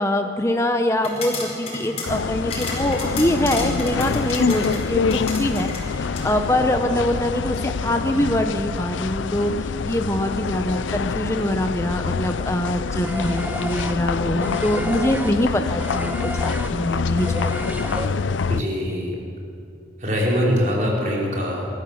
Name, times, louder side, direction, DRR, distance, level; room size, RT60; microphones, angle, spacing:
voice 1, 0.0-5.7 6.0-17.7, left 1 dB, 15° left, 5 dB, 0.9 m, -24 dB
sound 1, 0.9-6.3, left 3 dB, 35° left, 5.1 m, -33 dB
sound 2, 2.0-18.6, left 5 dB, 85° left, 0.5 m, -26 dB
sound 3, 13.0-18.5, right 1 dB, 10° right, 1.2 m, -33 dB
voice 2, 18.5-19.2 20.0-21.7, equal, 40° right, -3 dB, 5.2 m, -23 dB
27.5 x 14.5 x 7.2 m, 2.5 s
head